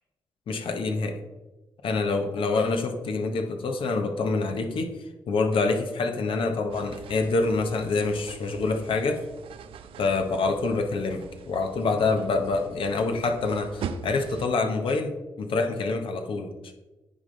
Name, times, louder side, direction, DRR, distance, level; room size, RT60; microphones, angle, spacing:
voice 1, 0.5-1.2 1.8-4.9 5.3-9.2 10.0-16.7, left 3 dB, 70° left, 5 dB, 0.9 m, -26 dB
sound 1, 6.7-14.5, right 7 dB, 75° right, 0.4 m, -42 dB
9.7 x 3.7 x 3.9 m, 1.1 s
supercardioid pair, 55°, 9 cm